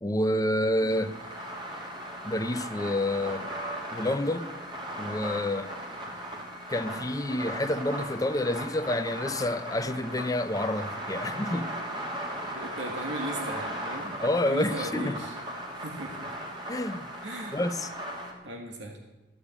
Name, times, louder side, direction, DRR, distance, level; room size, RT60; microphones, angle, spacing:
voice 1, 0.0-1.2 2.2-3.5 3.9-4.5 5.0-5.7 6.7-11.7 14.0-15.2 16.7-17.1 17.5-17.9, left 1 dB, 20° left, 0.8 m, -28 dB
sound 1, 0.7-18.3, right 1 dB, 25° right, 3.1 m, -37 dB
voice 2, 12.5-14.1 14.5-15.4 15.7-16.3 17.2-17.6 18.4-19.0, right 1 dB, 85° right, 2.2 m, -37 dB
15.0 x 9.4 x 8.5 m
head